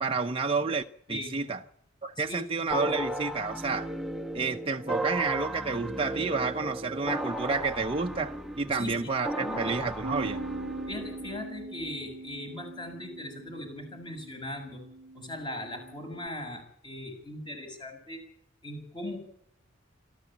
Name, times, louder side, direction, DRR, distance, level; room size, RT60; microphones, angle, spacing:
voice 1, 0.0-1.6 2.0-3.9 4.3-10.4, right 4 dB, 25° right, 0.7 m, -30 dB
voice 2, 2.2-2.7 8.7-9.1 9.4-9.8 10.9-14.8 15.1-18.2 18.6-19.2, left 1 dB, 20° left, 6.7 m, -39 dB
sound 1, 2.7-11.4, right 1 dB, ahead, 1.1 m, -35 dB
Bass guitar, 10.0-16.3, right 2 dB, 55° right, 0.9 m, -42 dB
26.0 x 13.5 x 8.6 m
head